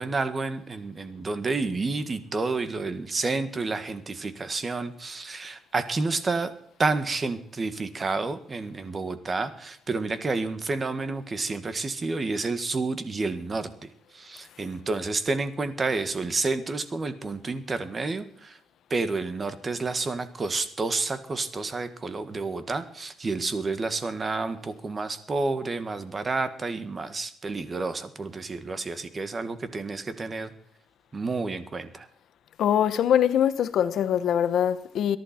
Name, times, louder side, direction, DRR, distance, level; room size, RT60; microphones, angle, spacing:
voice 1, 0.0-6.5 6.8-13.7 14.1-18.6 18.9-30.5 31.1-32.1, right 3 dB, 35° right, 1.7 m, -30 dB
voice 2, 32.6-35.2, left 9 dB, 70° left, 1.0 m, -23 dB
22.0 x 11.5 x 4.4 m
cardioid pair, 90°, 0 cm